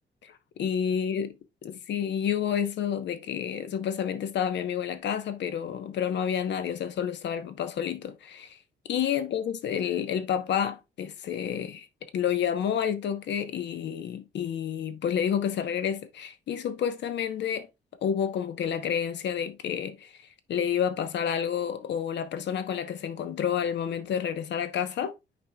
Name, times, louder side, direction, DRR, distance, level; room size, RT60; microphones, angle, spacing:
voice 1, 0.2-1.3 1.6-8.6 8.9-11.9 12.1-17.7 18.0-20.1 20.5-25.2, left 8 dB, 80° left, 0.9 m, -29 dB
9.7 x 4.4 x 2.3 m
wide cardioid pair, 150°, 18 cm